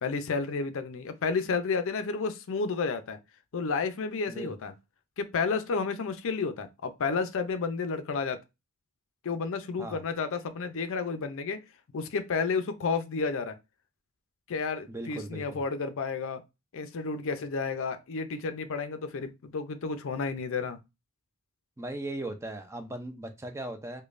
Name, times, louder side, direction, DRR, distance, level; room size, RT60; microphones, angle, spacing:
voice 1, 0.0-3.2 3.5-4.7 5.2-8.4 9.2-11.6 11.9-13.6 14.5-16.4 16.7-20.8, left 4 dB, 60° left, 0.5 m, -31 dB
voice 2, 14.9-15.6 21.8-24.0, right 1 dB, 15° right, 0.4 m, -38 dB
5.0 x 2.2 x 2.5 m
head